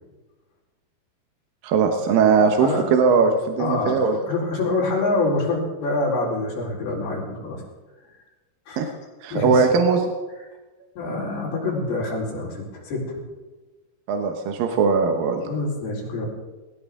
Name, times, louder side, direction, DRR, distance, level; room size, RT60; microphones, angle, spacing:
voice 1, 1.6-4.2 8.8-8.9 9.2-10.1 14.1-15.4, right 5 dB, 70° right, 4 dB, 2.6 m, -19 dB
voice 2, 2.4-2.9 3.6-7.6 8.7-8.9 9.3-9.7 11.0-13.1 15.4-16.3, left 2 dB, 75° left, -5 dB, 6.3 m, -26 dB
20.5 x 18.0 x 3.7 m, 1.2 s
omnidirectional pair, 4.5 m